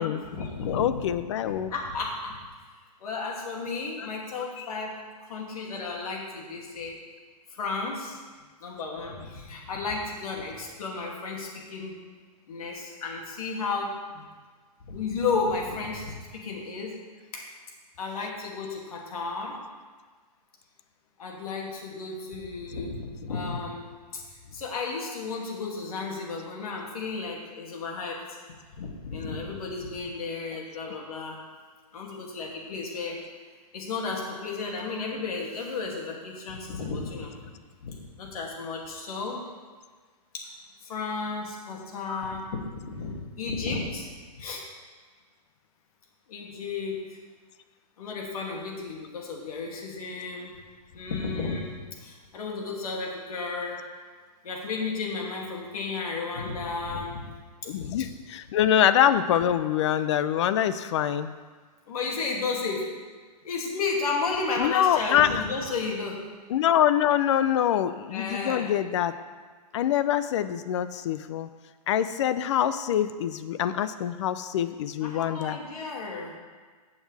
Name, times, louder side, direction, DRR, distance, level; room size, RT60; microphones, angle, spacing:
voice 1, 0.0-1.0 1.5-2.4 3.0-7.0 7.5-8.2 8.6-12.0 12.5-14.3 14.9-16.9 17.3-17.5 18.0-19.6 21.2-28.2 28.8-31.4 31.9-33.2 33.7-37.4 37.8-39.4 40.3-40.5 40.8-44.1 44.4-44.7 46.3-47.0 48.0-50.5 50.9-53.8 54.4-57.3 57.8-57.9 61.9-62.9 63.4-66.2 68.1-68.7 75.0-76.3, left 4 dB, 60° left, -1 dB, 2.6 m, -33 dB
voice 2, 0.6-1.7 4.0-4.1 4.6-4.7 42.1-42.2 57.7-61.3 64.6-65.3 66.5-69.2 69.7-71.5 71.9-75.6, left 10 dB, 45° left, 12 dB, 0.6 m, -25 dB
15.0 x 7.1 x 3.5 m, 1.5 s
hypercardioid pair, 145°, 21 cm